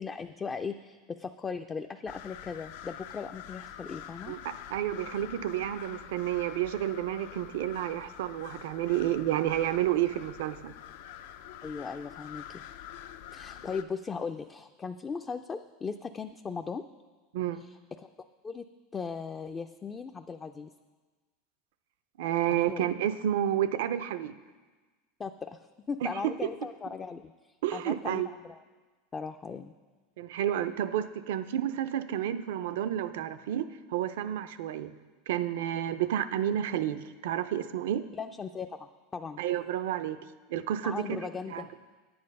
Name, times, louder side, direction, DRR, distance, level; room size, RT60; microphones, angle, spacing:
voice 1, 0.0-4.3 11.6-12.6 13.3-16.8 17.6-18.1 18.4-18.7 18.9-20.7 22.5-22.9 25.2-25.6 25.9-28.6 29.1-29.7 38.1-39.4 40.8-41.7, left 5 dB, 20° left, 6 dB, 0.3 m, -38 dB
sound 1, 2.1-13.8, left 10 dB, 75° left, 0.5 m, -46 dB
voice 2, 4.3-10.7 17.3-17.6 22.2-24.3 26.0-26.3 27.6-28.3 30.2-34.9 35.3-38.0 39.4-40.2 40.5-41.6, right 11 dB, 80° right, 12 dB, 0.5 m, -30 dB
9.7 x 8.7 x 5.3 m, 1.3 s
supercardioid pair, 130°, 0 cm